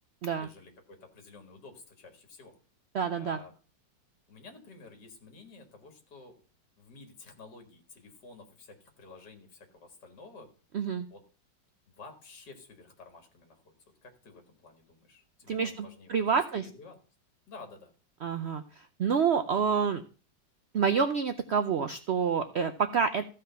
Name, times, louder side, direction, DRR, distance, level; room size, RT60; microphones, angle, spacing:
voice 1, 0.4-2.5 3.1-3.5 4.3-6.4 6.8-10.5 11.1-11.2 11.9-13.7 14.0-17.0 17.5-17.9, left 3 dB, 65° left, 5 dB, 2.4 m, -51 dB
voice 2, 2.9-3.4 10.7-11.1 15.5-16.6 18.2-20.0 20.7-23.3, right 6 dB, 80° right, 9 dB, 0.5 m, -28 dB
14.5 x 5.0 x 5.6 m, 0.36 s
omnidirectional pair, 2.0 m